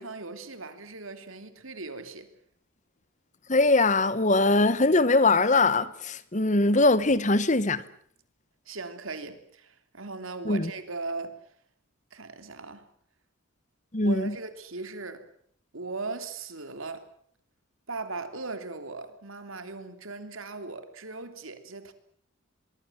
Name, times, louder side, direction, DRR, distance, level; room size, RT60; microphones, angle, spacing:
voice 1, 0.0-2.3 8.7-11.4 12.1-12.9 14.0-15.3 15.7-17.1 17.9-21.9, right 3 dB, 80° right, 3.2 m, -38 dB
voice 2, 3.5-7.8 10.4-10.7 13.9-14.3, left 2 dB, 35° left, 1.2 m, -22 dB
24.0 x 23.5 x 7.4 m
head